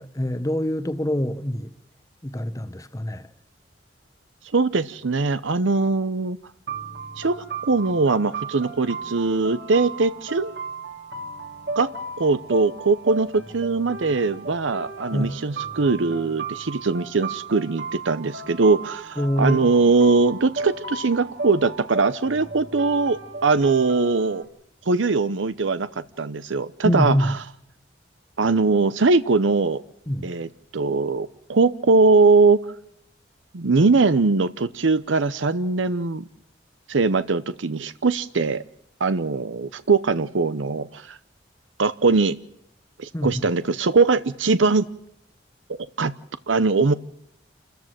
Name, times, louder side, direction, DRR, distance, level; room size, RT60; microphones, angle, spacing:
voice 1, 0.0-1.7 2.2-3.3 15.1-15.3 19.2-19.7 26.8-27.3 30.1-30.3 43.1-43.5, equal, 15° left, 1.0 m, -25 dB
voice 2, 4.5-6.4 7.2-10.5 11.8-11.9 12.2-24.4 24.9-25.9 26.2-27.4 28.4-29.8 30.2-32.6 33.5-36.2 36.9-38.6 39.0-41.2 41.8-42.3 43.0-44.9 45.7-46.1 46.5-46.9, right 4 dB, 90° right, 0.7 m, -21 dB
sound 1, 6.7-24.4, right 3 dB, 65° right, 2.7 m, -35 dB
28.5 x 14.0 x 7.6 m
head